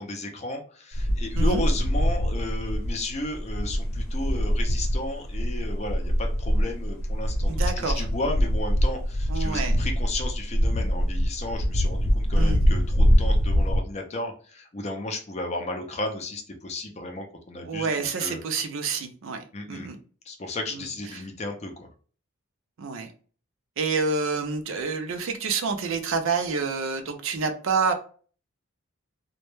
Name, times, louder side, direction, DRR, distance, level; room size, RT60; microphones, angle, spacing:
voice 1, 0.0-18.4 19.5-19.9 20.3-21.9, left 2 dB, 30° left, 3 dB, 0.4 m, -34 dB
sound 1, 0.9-13.8, equal, 85° left, 0.7 m, -24 dB
voice 2, 7.5-8.0 9.3-9.8 12.4-12.6 17.7-20.0 20.7-20.8 21.1-21.2 22.8-23.1 23.8-27.9, right 4 dB, 70° right, 6 dB, 0.4 m, -28 dB
2.1 x 2.1 x 2.9 m, 0.42 s
head